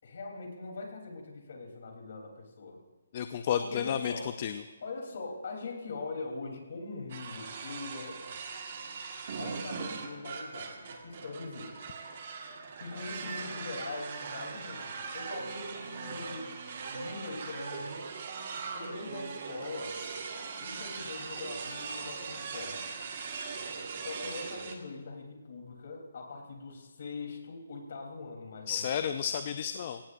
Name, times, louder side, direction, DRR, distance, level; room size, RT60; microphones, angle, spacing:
voice 1, 0.0-2.8 3.6-4.3 4.8-8.2 9.4-11.7 12.8-16.5 16.9-18.0 18.7-20.0 20.6-22.9 23.9-29.1, left 3 dB, 45° left, 2 dB, 3.3 m, -42 dB
voice 2, 3.1-4.1 4.4-4.6 28.7-30.0, left 8 dB, 25° left, 9 dB, 0.4 m, -31 dB
sound 1, 7.1-24.7, right 5 dB, 35° right, 1.6 m, -40 dB
25.0 x 17.5 x 2.6 m, 1.3 s
hypercardioid pair, 175°, 0 cm